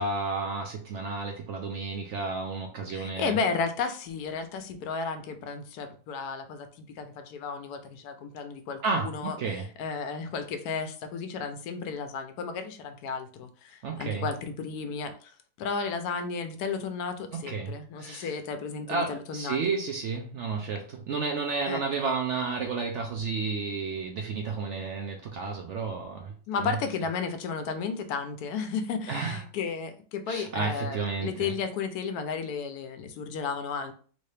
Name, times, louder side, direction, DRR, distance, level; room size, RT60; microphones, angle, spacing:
voice 1, 0.0-3.3 8.8-9.7 13.8-14.3 17.3-18.3 18.9-26.3 26.6-26.8 29.1-29.4 30.3-31.5, right 4 dB, 70° right, 2 dB, 0.7 m, -31 dB
voice 2, 2.9-9.4 9.8-15.3 15.6-19.6 21.7-21.8 26.5-33.9, left 5 dB, 80° left, 8 dB, 1.1 m, -33 dB
3.2 x 2.7 x 3.2 m, 0.43 s
omnidirectional pair, 1.6 m